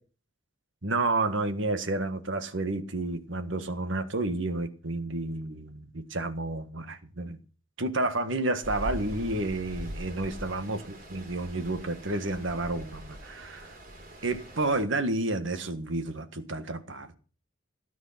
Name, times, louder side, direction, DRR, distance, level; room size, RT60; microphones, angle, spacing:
voice 1, 0.8-7.4 7.8-13.7 14.2-17.1, right 2 dB, 70° right, 1.7 m, -30 dB
Stream, 8.6-14.8, equal, 45° right, 4.0 m, -42 dB
17.5 x 9.5 x 5.9 m
head